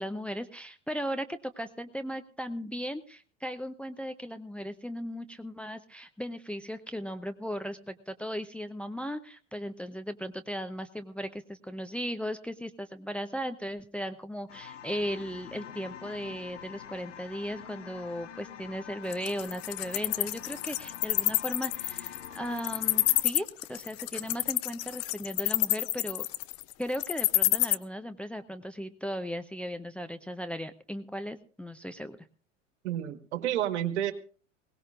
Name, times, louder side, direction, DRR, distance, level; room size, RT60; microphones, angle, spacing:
voice 1, 0.0-26.3 26.8-32.3, equal, 5° left, 8 dB, 0.7 m, -37 dB
sound 1, 14.5-23.2, left 9 dB, 70° left, 1.0 m, -46 dB
Wild animals, 19.1-27.7, left 20 dB, 40° left, 0.6 m, -27 dB
voice 2, 32.8-34.1, right 11 dB, 65° right, 10 dB, 1.6 m, -30 dB
21.5 x 18.0 x 2.5 m, 0.39 s
figure-of-eight pair, 75°, 37 cm